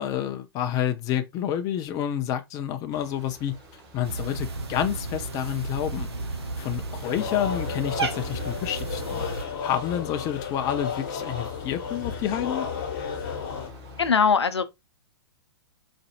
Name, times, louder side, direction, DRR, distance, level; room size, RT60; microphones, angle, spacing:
voice 1, 0.0-3.5 3.9-6.1 6.6-12.7, left 10 dB, 25° left, 0.5 m, -29 dB
sound 1, 2.9-14.1, left 1 dB, 45° right, 2.3 m, -48 dB
Cat, 4.0-9.4, right 3 dB, 70° right, 1.0 m, -33 dB
sound 2, 7.0-13.7, left 6 dB, 50° left, 1.3 m, -33 dB
voice 2, 14.0-14.6, left 6 dB, 80° left, 0.5 m, -20 dB
4.2 x 2.6 x 2.4 m
figure-of-eight pair, 110°, 14 cm